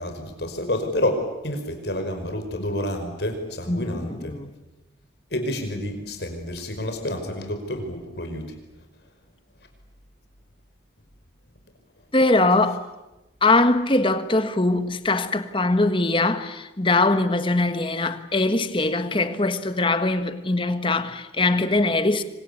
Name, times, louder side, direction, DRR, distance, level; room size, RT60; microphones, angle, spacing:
voice 1, 0.0-4.4 5.3-8.5, left 1 dB, 65° left, 5.4 m, -29 dB
voice 2, 3.7-4.5 12.1-12.9 13.4-22.2, left 2 dB, 30° left, 1.5 m, -22 dB
26.5 x 25.0 x 8.5 m
head